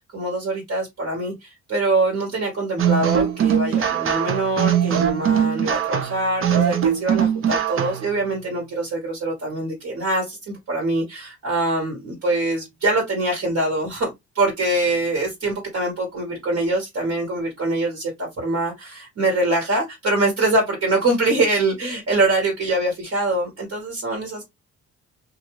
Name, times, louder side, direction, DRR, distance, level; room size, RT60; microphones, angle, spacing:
voice 1, 0.1-24.4, right 2 dB, 60° right, 1.3 m, -24 dB
sound 1, 2.8-8.1, right 9 dB, 45° right, 0.5 m, -21 dB
2.4 x 2.4 x 2.9 m
cardioid pair, 90°, 30 cm